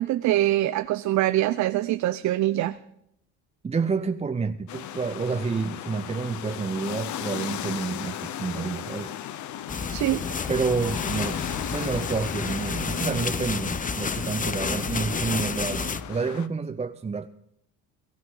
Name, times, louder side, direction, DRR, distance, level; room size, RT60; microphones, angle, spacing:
voice 1, 0.0-2.8 9.9-10.2, right 14 dB, 60° right, 0.7 m, -24 dB
voice 2, 3.6-9.2 10.5-11.4 11.7-17.3, right 4 dB, 20° right, 0.7 m, -29 dB
sound 1, 4.7-16.5, left 11 dB, 65° left, 1.1 m, -36 dB
sound 2, 9.7-16.0, left 5 dB, 25° left, 1.0 m, -30 dB
22.5 x 13.5 x 3.9 m
supercardioid pair, 80°, 32 cm